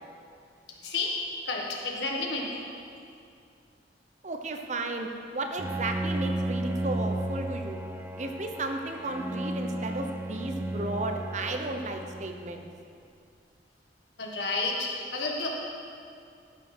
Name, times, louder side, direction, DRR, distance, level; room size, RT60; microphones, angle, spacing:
voice 1, 1.5-2.6 14.2-15.5, left 3 dB, 75° left, -1 dB, 1.6 m, -31 dB
voice 2, 4.2-5.1 5.3-7.8 8.1-12.6, right 2 dB, 40° right, 4 dB, 0.8 m, -34 dB
Bowed string instrument, 5.6-12.7, right 1 dB, 10° right, 0.4 m, -34 dB
13.5 x 5.2 x 6.1 m, 2.4 s
head